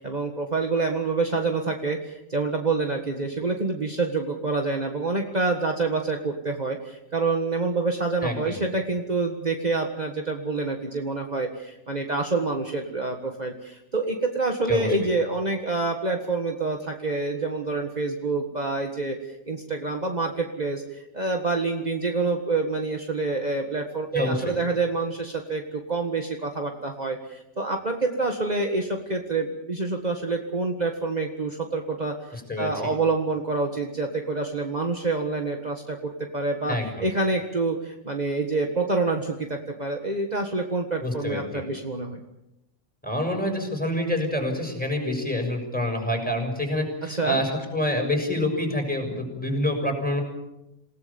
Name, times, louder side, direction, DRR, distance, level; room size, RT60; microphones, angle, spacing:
voice 1, 0.0-42.2 47.1-47.4, right 3 dB, 35° right, 3 dB, 1.8 m, -27 dB
voice 2, 8.2-8.6 14.7-14.9 24.1-24.5 32.3-32.9 36.7-37.1 41.0-41.6 43.0-50.2, left 1 dB, 5° left, 3 dB, 6.5 m, -27 dB
28.5 x 18.0 x 7.1 m, 0.89 s
omnidirectional pair, 1.2 m